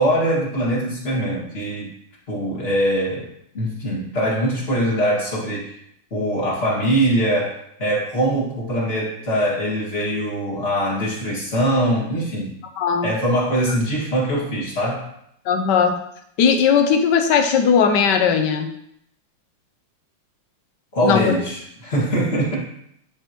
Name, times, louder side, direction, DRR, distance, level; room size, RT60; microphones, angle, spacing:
voice 1, 0.0-1.9 2.3-3.3 3.5-5.8 6.1-12.5 13.0-15.1 20.9-22.6, right 1 dB, 30° left, -5 dB, 2.1 m, -22 dB
voice 2, 12.8-13.1 13.7-13.8 15.5-15.9 16.4-18.7 21.0-21.3, left 6 dB, 65° left, 6 dB, 1.2 m, -18 dB
9.9 x 4.6 x 3.0 m, 0.72 s
omnidirectional pair, 2.3 m